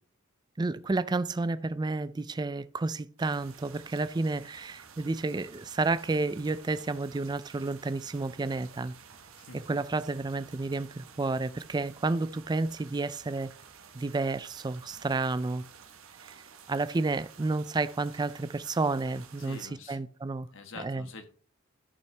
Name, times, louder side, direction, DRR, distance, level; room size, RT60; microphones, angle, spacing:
voice 1, 0.6-8.9 9.7-13.5 13.9-15.7 16.2-16.4 16.7-20.5 20.8-21.1, right 3 dB, 20° right, 0.4 m, -31 dB
sound 1, 3.2-19.7, right 6 dB, 70° right, 1.2 m, -52 dB
voice 2, 9.3-9.8 19.4-20.1 20.5-21.2, left 3 dB, 65° left, 1.3 m, -46 dB
13.5 x 5.7 x 3.4 m
head